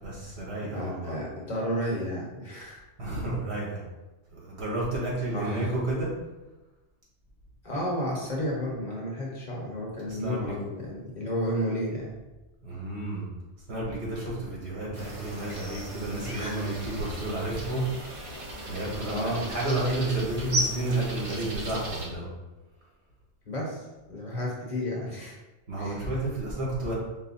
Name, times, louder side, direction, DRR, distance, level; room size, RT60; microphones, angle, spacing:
voice 1, 0.0-1.1 3.0-3.8 4.3-6.1 10.1-10.5 12.6-13.3 13.7-17.8 18.7-22.3 25.7-26.9, right 2 dB, 65° right, -6 dB, 1.6 m, -31 dB
voice 2, 0.6-2.8 5.3-5.7 7.6-12.1 16.3-16.5 19.1-19.5 23.5-23.8 24.1-25.4 25.8-26.0, equal, 40° left, -4 dB, 1.0 m, -32 dB
sound 1, 14.9-22.1, right 1 dB, 35° right, 0.8 m, -36 dB
4.8 x 2.2 x 4.1 m, 1.1 s
omnidirectional pair, 1.2 m